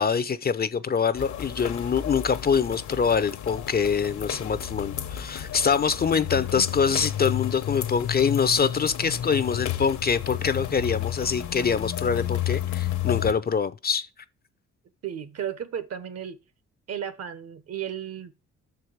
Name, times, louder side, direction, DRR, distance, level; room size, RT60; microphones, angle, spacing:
voice 1, 0.0-14.1, left 6 dB, 30° left, 0.5 m, -24 dB
sound 1, 1.1-13.3, left 11 dB, 70° left, 1.0 m, -32 dB
voice 2, 15.0-16.4 16.9-18.3, right 9 dB, 55° right, 1.1 m, -34 dB
6.4 x 4.7 x 6.3 m
cardioid pair, 90°, 30 cm